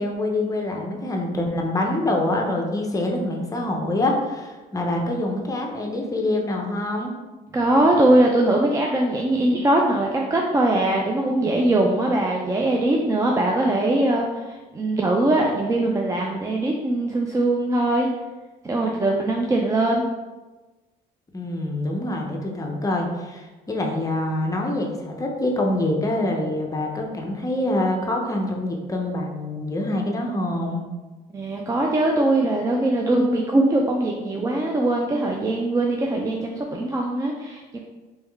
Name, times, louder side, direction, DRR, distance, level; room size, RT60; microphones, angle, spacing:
voice 1, 0.0-7.1 21.3-30.8, left 1 dB, 20° left, 1 dB, 0.6 m, -25 dB
voice 2, 7.5-18.1 18.6-20.0 31.3-37.8, right 1 dB, 20° right, 0 dB, 0.4 m, -21 dB
3.5 x 3.1 x 3.4 m, 1.2 s
cardioid pair, 110°, 17 cm